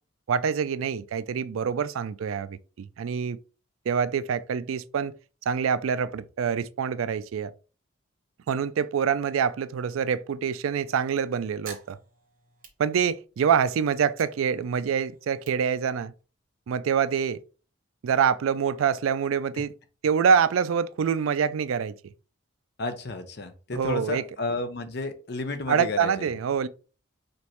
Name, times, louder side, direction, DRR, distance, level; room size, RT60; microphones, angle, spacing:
voice 1, 0.3-3.4 3.9-5.1 5.5-7.5 8.5-12.0 12.8-16.1 16.7-17.4 18.0-19.7 20.0-22.0 23.7-24.2 25.7-26.7, right 7 dB, 85° right, 0.4 m, -25 dB
sound 1, 11.6-13.5 13.9-16.5, right 6 dB, 40° right, 1.2 m, -49 dB
voice 2, 22.8-26.3, left 3 dB, 55° left, 0.7 m, -32 dB
5.1 x 3.0 x 3.0 m
head